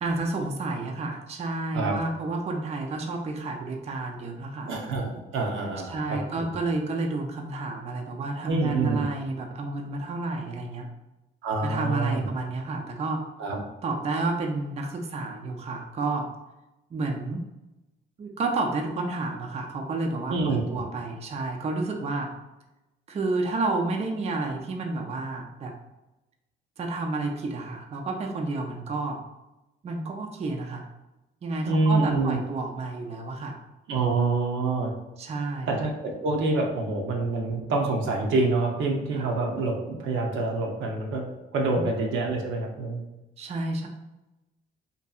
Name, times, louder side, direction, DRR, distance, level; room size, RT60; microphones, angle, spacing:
voice 1, 0.0-4.7 5.8-10.9 11.6-13.2 13.8-16.3 16.9-17.4 18.2-22.3 23.1-25.7 26.8-29.2 29.8-30.9 31.4-33.6 35.2-35.8 39.1-39.3 41.7-41.8 43.4-43.9, right 3 dB, 30° right, 2 dB, 0.4 m, -30 dB
voice 2, 4.7-6.5 8.5-9.0 11.4-12.3 13.4-13.6 20.3-20.7 31.6-32.4 33.9-34.9 35.7-41.3 41.5-43.0, right 3 dB, 80° right, 1 dB, 0.6 m, -26 dB
2.6 x 2.6 x 2.3 m, 0.99 s
cardioid pair, 90°, 20 cm